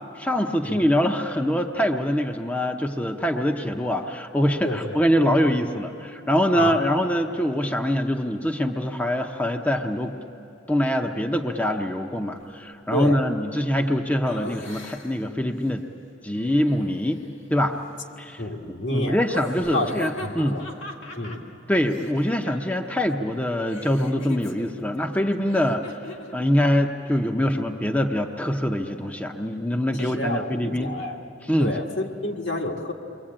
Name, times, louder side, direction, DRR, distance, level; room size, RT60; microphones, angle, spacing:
voice 1, 0.2-10.1 10.7-15.8 16.2-17.2 17.5-17.8 18.2-18.4 18.9-20.6 21.7-25.8 26.3-30.9 31.5-31.7, equal, 10° left, 3 dB, 0.8 m, -24 dB
voice 2, 4.6-5.3 6.5-6.8 12.9-13.3 18.4-19.2 19.7-19.9 20.2-20.7 21.2-21.4 29.9-31.2 31.6-32.9, left 1 dB, 70° left, 1 dB, 1.9 m, -29 dB
Laughter, 14.3-15.3 16.3-17.4 19.2-23.0 23.3-26.4, left 1 dB, 85° left, 2.0 m, -40 dB
29.0 x 23.0 x 8.8 m, 2.8 s
head